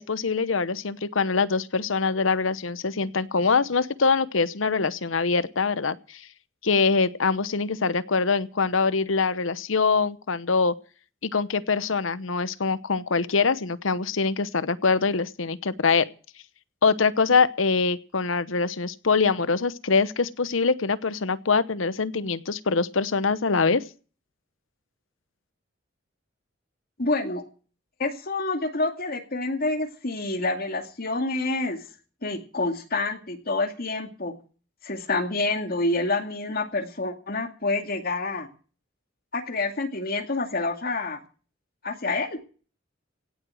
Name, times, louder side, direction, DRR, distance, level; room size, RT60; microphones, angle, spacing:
voice 1, 0.0-6.2 6.6-10.7 11.2-16.1 16.8-23.8, left 4 dB, 85° left, 16 dB, 0.9 m, -24 dB
voice 2, 27.0-27.4 28.0-31.8 32.2-34.3 34.8-38.5 39.3-41.2 41.8-42.4, left 2 dB, 50° left, 5 dB, 2.4 m, -28 dB
17.0 x 8.0 x 7.7 m, 0.39 s
head